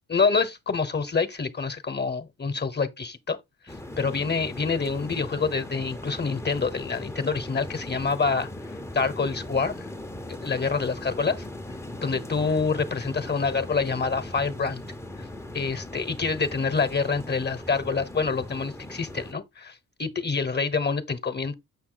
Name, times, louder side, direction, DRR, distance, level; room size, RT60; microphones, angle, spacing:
voice 1, 0.1-3.4 4.0-8.5 8.9-9.7 10.4-11.4 12.0-14.8 15.5-21.5, left 4 dB, 30° left, 1.1 m, -26 dB
sound 1, 3.7-19.3, left 1 dB, 5° left, 0.8 m, -39 dB
7.4 x 5.6 x 3.9 m
cardioid pair, 100°, 36 cm